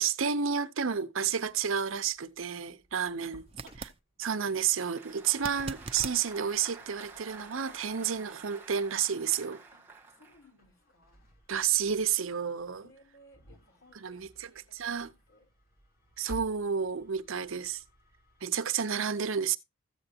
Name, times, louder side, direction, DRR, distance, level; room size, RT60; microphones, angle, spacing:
voice 1, 0.0-3.4 4.2-9.6 11.5-12.8 14.0-14.3 14.7-15.1 16.2-17.8 18.4-19.6, right 7 dB, 70° right, 0.7 m, -30 dB
Engine starting, 1.5-18.4, right 1 dB, 45° left, 3.6 m, -56 dB
voice 2, 3.0-3.9 9.7-9.8 10.1-11.3 12.8-15.5, left 1 dB, 85° left, 4.4 m, -62 dB
sound 1, 3.5-4.0 5.3-6.2 9.2-9.3, right 5 dB, 25° right, 0.5 m, -40 dB
Applause, 4.4-10.4, right 4 dB, 10° right, 1.3 m, -50 dB
14.0 x 7.9 x 2.8 m
head